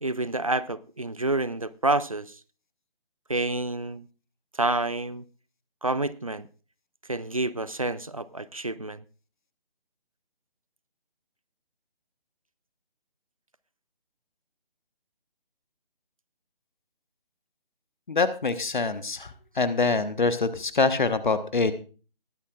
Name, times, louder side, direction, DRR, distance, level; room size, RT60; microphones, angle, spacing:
voice 1, 0.0-2.4 3.3-4.1 4.5-5.2 5.8-6.5 7.1-9.0, right 2 dB, 35° right, 0.4 m, -28 dB
voice 2, 18.1-21.7, left 4 dB, 55° left, 1.2 m, -25 dB
20.0 x 10.0 x 2.4 m
figure-of-eight pair, 150°, 30 cm